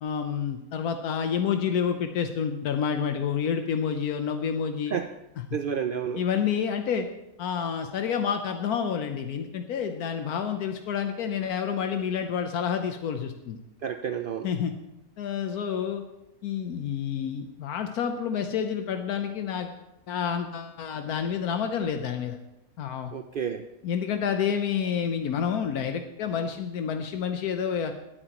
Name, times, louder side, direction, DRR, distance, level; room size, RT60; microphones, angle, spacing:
voice 1, 0.0-4.9 6.2-7.1 7.4-13.6 14.4-14.7 15.2-16.0 16.4-19.7 20.1-22.4 22.8-23.1 23.8-27.9, left 7 dB, 85° left, 6 dB, 1.3 m, -29 dB
voice 2, 5.5-6.2 13.8-14.5 23.1-23.6, right 8 dB, 80° right, 7 dB, 0.4 m, -30 dB
19.0 x 8.7 x 3.0 m, 0.89 s
omnidirectional pair, 1.6 m